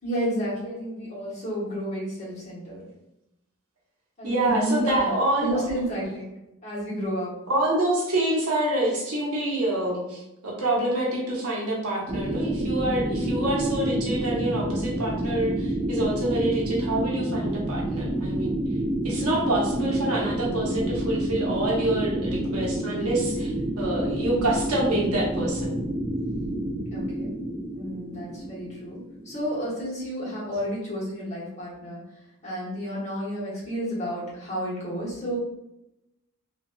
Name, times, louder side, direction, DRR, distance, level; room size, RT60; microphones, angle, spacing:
voice 1, 0.0-2.9 4.2-5.1 5.4-6.3 6.6-7.4 26.9-27.3 27.7-29.0 29.2-32.0 32.4-35.4, equal, 30° left, -7 dB, 1.1 m, -31 dB
voice 2, 4.2-5.7 7.5-18.6 19.0-25.8, right 1 dB, 80° right, -3 dB, 0.8 m, -26 dB
sound 1, 12.1-29.7, right 1 dB, 20° right, 0.3 m, -29 dB
2.6 x 2.6 x 2.2 m, 0.88 s
head